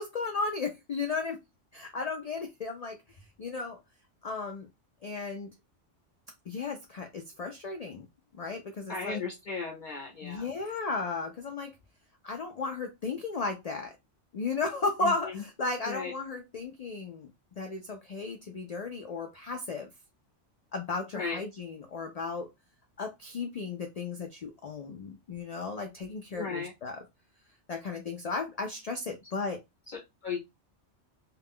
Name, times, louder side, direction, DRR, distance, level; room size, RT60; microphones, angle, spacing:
voice 1, 0.0-1.4 1.7-3.0 3.4-3.8 4.2-4.7 5.0-5.5 6.5-8.1 8.3-9.2 10.2-11.7 12.2-14.0 14.3-17.3 17.6-19.9 20.7-22.5 23.0-27.0 27.7-29.6, left 3 dB, 90° left, 0.3 m, -35 dB
voice 2, 8.9-10.5 15.0-15.1 15.9-16.1 21.1-21.4 26.4-26.7 29.9-30.4, left 4 dB, 50° left, 0.6 m, -35 dB
2.4 x 2.2 x 3.4 m
omnidirectional pair, 1.2 m